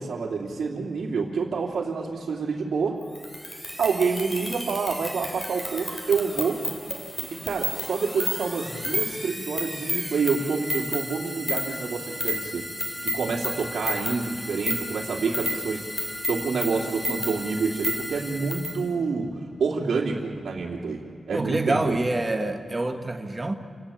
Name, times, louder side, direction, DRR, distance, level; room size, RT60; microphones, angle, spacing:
voice 1, 0.0-3.0 3.8-6.6 7.3-12.6 13.0-19.3 19.6-21.0 21.3-22.0, right 4 dB, 80° right, -5 dB, 2.9 m, -28 dB
sound 1, 3.2-18.8, equal, 10° left, 3.2 m, -32 dB
voice 2, 21.3-23.5, right 2 dB, 20° right, 4 dB, 1.5 m, -26 dB
29.0 x 18.0 x 7.3 m, 2.5 s
wide cardioid pair, 175°, 0 cm